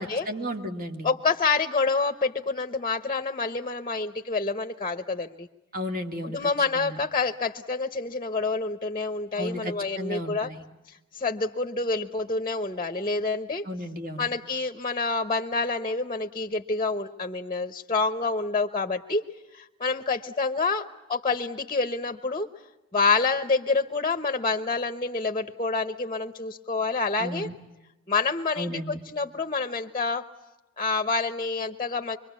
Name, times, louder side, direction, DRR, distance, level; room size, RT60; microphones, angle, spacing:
voice 1, 0.3-1.1 5.7-7.0 9.4-10.6 13.6-14.3 27.2-27.5 28.6-29.0, equal, 40° right, 5 dB, 2.4 m, -34 dB
voice 2, 1.0-5.5 6.3-10.5 11.1-13.7 14.2-19.2 19.5-22.5 22.9-27.5 28.1-30.2 30.8-32.2, left 4 dB, 25° left, 8 dB, 1.0 m, -27 dB
25.5 x 23.5 x 8.3 m, 0.99 s
head